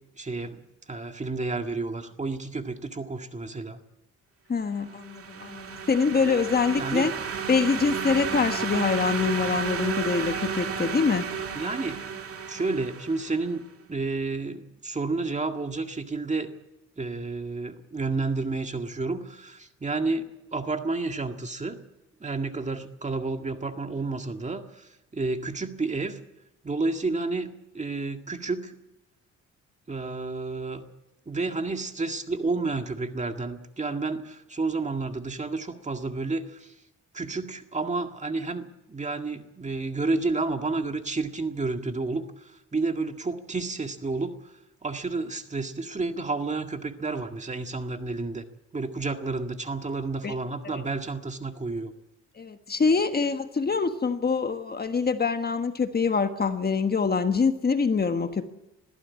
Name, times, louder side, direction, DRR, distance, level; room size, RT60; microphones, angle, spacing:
voice 1, 0.2-0.6 0.9-3.8 6.8-7.1 11.5-12.0 12.5-16.5 17.0-21.8 22.2-26.2 26.6-28.8 29.9-30.9 31.3-36.7 37.1-44.5 44.8-48.4 48.7-51.9, right 3 dB, 25° right, 1.9 m, -30 dB
voice 2, 4.5-7.1 7.5-11.3 50.2-50.4 52.4-58.5, left 5 dB, 30° left, 1.4 m, -25 dB
sound 1, 4.9-13.5, right 6 dB, 50° right, 2.2 m, -32 dB
21.5 x 14.5 x 8.4 m
cardioid pair, 90°, 30 cm